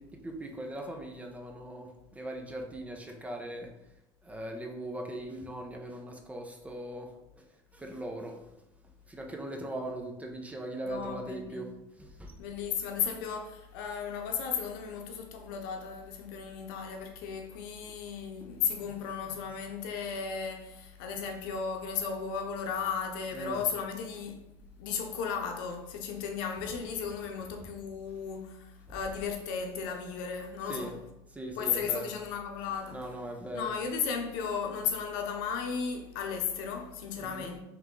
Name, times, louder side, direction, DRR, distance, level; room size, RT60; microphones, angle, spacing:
voice 1, 0.0-3.7 4.2-8.6 9.1-11.7 12.0-12.5 17.9-18.0 18.4-18.5 18.8-19.0 19.2-19.3 23.3-23.6 28.9-29.0 30.7-30.9 31.3-32.1 32.9-33.7 37.2-37.5, right 1 dB, 10° right, 0.7 m, -40 dB
voice 2, 10.8-11.7 12.4-24.4 24.8-31.0 31.6-33.1 33.5-37.6, left 6 dB, 85° left, 0.7 m, -35 dB
3.6 x 3.1 x 3.7 m
supercardioid pair, 105°, 11 cm